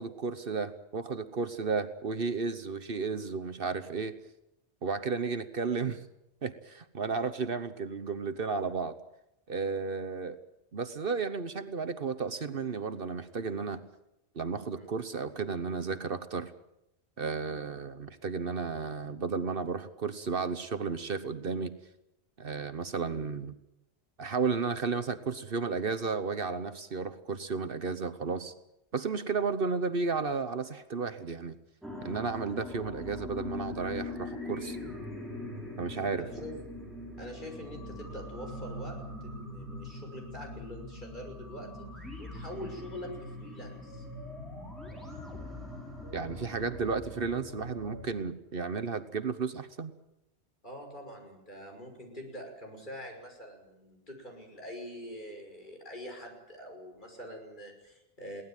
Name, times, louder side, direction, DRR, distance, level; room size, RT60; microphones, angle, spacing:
voice 1, 0.0-4.1 4.8-6.0 6.4-8.9 9.5-10.4 10.7-13.8 14.3-16.5 17.2-21.8 22.4-23.6 24.2-28.5 28.9-31.6 32.0-34.8 35.8-36.3 46.1-49.9, right 4 dB, 60° right, 11 dB, 1.2 m, -33 dB
sound 1, 31.8-48.0, left 2 dB, ahead, 6.0 m, -42 dB
voice 2, 36.2-36.6 37.2-41.9 42.2-44.0 50.6-58.4, equal, 45° left, 2 dB, 6.1 m, -44 dB
22.5 x 17.5 x 9.0 m, 0.86 s
omnidirectional pair, 1.1 m